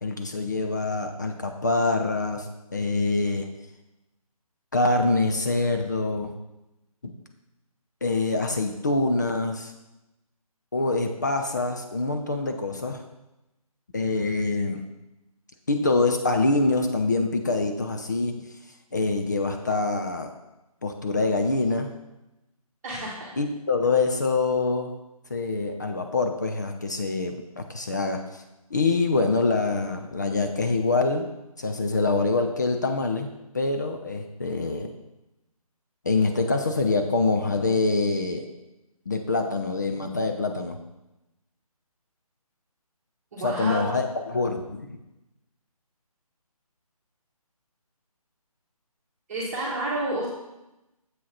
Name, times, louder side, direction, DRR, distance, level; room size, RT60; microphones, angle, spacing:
voice 1, 0.0-3.5 4.7-6.3 7.0-7.1 8.0-9.7 10.7-13.0 13.9-14.8 15.7-18.5 18.9-20.3 20.8-21.9 23.4-24.9 25.3-28.4 28.7-31.3 31.6-33.3 33.5-34.9 36.0-38.5 39.1-40.8 43.4-45.0, left 3 dB, 30° left, 4 dB, 0.5 m, -25 dB
voice 2, 22.8-23.3 43.3-44.0 49.3-50.3, right 2 dB, 25° right, -8 dB, 1.4 m, -30 dB
7.4 x 6.2 x 4.2 m, 0.94 s
figure-of-eight pair, 150°, 19 cm